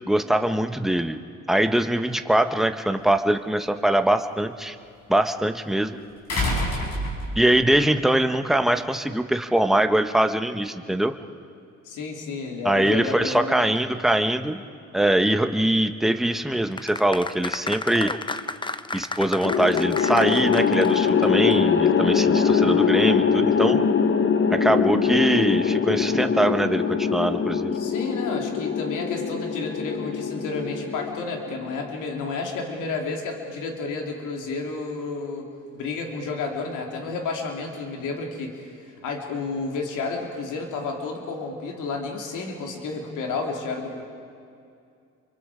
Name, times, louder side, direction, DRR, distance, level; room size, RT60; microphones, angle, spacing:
voice 1, 0.1-1.2 1.5-4.8 5.1-6.0 7.3-11.1 12.6-14.6 14.9-18.1 18.9-23.8 24.5-27.7, right 1 dB, ahead, 7 dB, 1.1 m, -22 dB
sound 1, 3.0-3.1 6.3-7.6 8.9-9.0, left 1 dB, 55° left, 6.7 m, -26 dB
voice 2, 11.8-13.7 27.7-44.0, left 3 dB, 85° left, 1 dB, 3.2 m, -31 dB
sound 2, 16.7-21.2 21.5-21.6, left 3 dB, 15° left, 0.7 m, -32 dB
sound 3, 19.4-31.8, left 6 dB, 40° left, 1.0 m, -22 dB
29.0 x 24.0 x 5.1 m, 2.4 s
cardioid pair, 90°, 30 cm